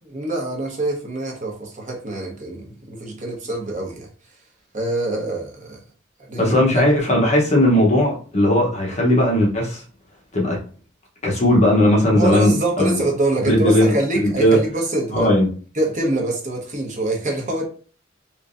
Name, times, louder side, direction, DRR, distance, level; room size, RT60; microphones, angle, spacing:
voice 1, 0.0-4.1 4.7-5.8 6.2-6.8 12.1-15.3 15.7-17.6, right 2 dB, 40° right, 1.1 m, -25 dB
voice 2, 6.4-9.8 10.3-10.6 11.2-13.0 13.4-14.6 15.1-15.5, left 1 dB, 35° left, 1.0 m, -17 dB
3.6 x 3.0 x 2.6 m
head